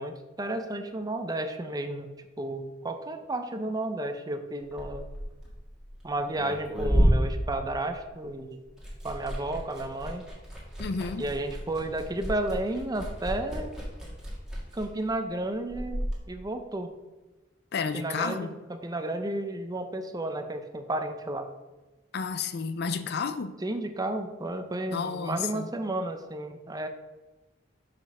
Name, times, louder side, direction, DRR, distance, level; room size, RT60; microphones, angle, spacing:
voice 1, 0.0-2.1 2.4-5.1 6.0-8.6 9.0-10.3 11.2-13.7 14.7-16.9 17.9-21.5 23.6-26.9, right 1 dB, 20° right, 7 dB, 0.6 m, -32 dB
Liquid, 4.6-8.3 8.6-16.2, equal, 5° right, 1.7 m, -31 dB
voice 2, 10.8-11.3 17.7-18.6 22.1-23.5 24.9-25.7, left 5 dB, 60° left, 11 dB, 0.5 m, -31 dB
6.0 x 5.1 x 5.3 m, 1.1 s
head